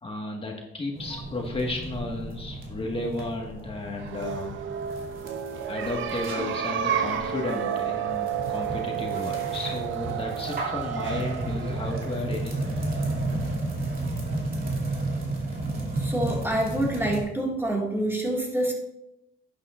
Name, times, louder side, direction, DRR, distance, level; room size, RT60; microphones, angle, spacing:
voice 1, 0.0-4.6 5.7-12.7, left 2 dB, 30° left, 0 dB, 1.6 m, -33 dB
sound 1, 0.9-17.2, right 2 dB, 50° right, 2.7 m, -33 dB
sound 2, 3.9-13.4, right 9 dB, 75° right, 0.7 m, -31 dB
voice 2, 16.0-18.7, right 1 dB, 10° right, -1 dB, 2.1 m, -27 dB
11.0 x 8.9 x 2.5 m, 0.86 s
cardioid pair, 90°, 20 cm